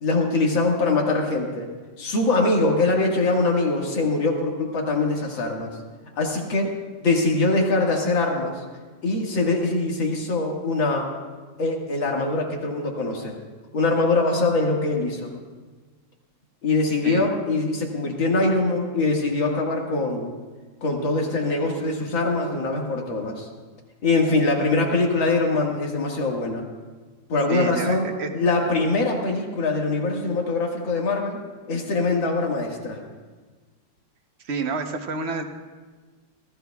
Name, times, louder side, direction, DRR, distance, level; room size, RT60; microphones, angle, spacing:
voice 1, 0.0-1.7 2.0-5.7 6.2-6.7 7.0-8.5 9.0-11.1 11.6-13.3 13.7-15.3 16.6-20.3 20.8-23.5 24.0-26.6 27.3-28.1 28.3-31.4 31.7-33.0, left 3 dB, 90° left, -1 dB, 2.6 m, -23 dB
voice 2, 27.5-28.3 34.5-35.4, right 4 dB, 45° right, 5 dB, 0.9 m, -29 dB
25.0 x 14.5 x 2.3 m, 1.4 s
omnidirectional pair, 2.1 m